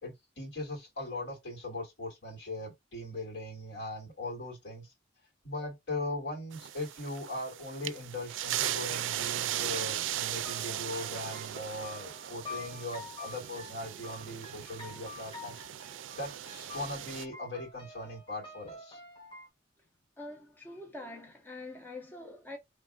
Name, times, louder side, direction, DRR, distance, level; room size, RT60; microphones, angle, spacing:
voice 1, 0.0-4.9 5.4-15.6 16.1-19.0, left 1 dB, 70° left, 2.1 m, -39 dB
sound 1, 6.5-17.3, right 12 dB, 90° right, 0.3 m, -38 dB
sound 2, 10.4-19.5, left 3 dB, 30° left, 1.6 m, -48 dB
voice 2, 20.2-22.6, left 2 dB, 10° left, 0.7 m, -44 dB
4.7 x 3.2 x 2.3 m
head